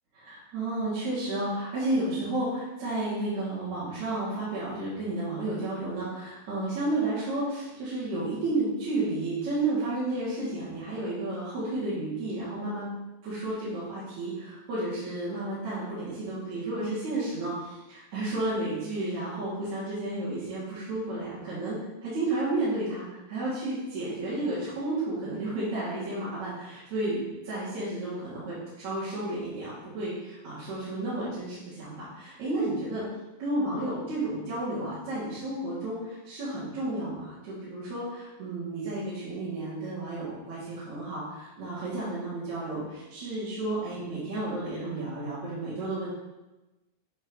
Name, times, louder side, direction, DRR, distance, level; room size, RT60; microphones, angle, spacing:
voice 1, 0.1-12.9 13.2-21.8 22.0-33.0 33.4-46.1, right 2 dB, 55° right, -12 dB, 2.6 m, -32 dB
8.3 x 2.9 x 4.5 m, 1.1 s
omnidirectional pair, 4.2 m